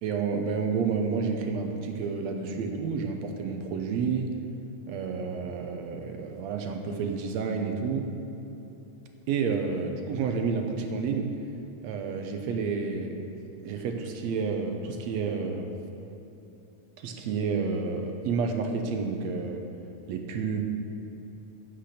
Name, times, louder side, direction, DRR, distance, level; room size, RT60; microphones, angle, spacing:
voice 1, 0.0-4.4 4.9-8.2 9.3-11.4 11.8-13.2 13.6-15.7 17.0-19.7 20.1-20.6, right 5 dB, 75° right, 4 dB, 1.7 m, -30 dB
15.5 x 6.0 x 6.5 m, 2.9 s
omnidirectional pair, 3.9 m